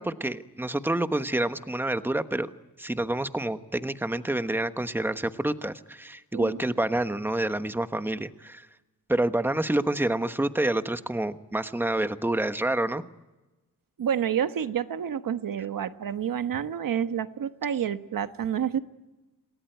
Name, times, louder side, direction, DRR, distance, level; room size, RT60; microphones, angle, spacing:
voice 1, 0.0-2.5 2.8-8.7 9.1-13.0, right 1 dB, 5° right, 10 dB, 1.2 m, -28 dB
voice 2, 14.0-18.8, right 8 dB, 70° right, 10 dB, 1.3 m, -29 dB
28.0 x 19.0 x 9.3 m, 1.1 s
wide cardioid pair, 110°, 34 cm